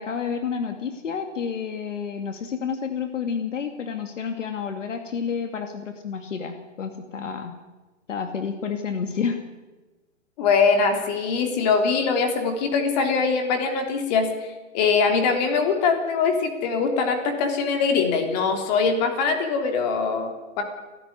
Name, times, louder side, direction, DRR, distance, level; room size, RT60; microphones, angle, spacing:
voice 1, 0.0-7.5 8.1-9.4, left 6 dB, 70° left, 6 dB, 2.6 m, -30 dB
voice 2, 10.4-20.6, left 5 dB, 35° left, 4 dB, 3.5 m, -22 dB
30.0 x 12.5 x 9.8 m, 1.2 s
hypercardioid pair, 150°, 38 cm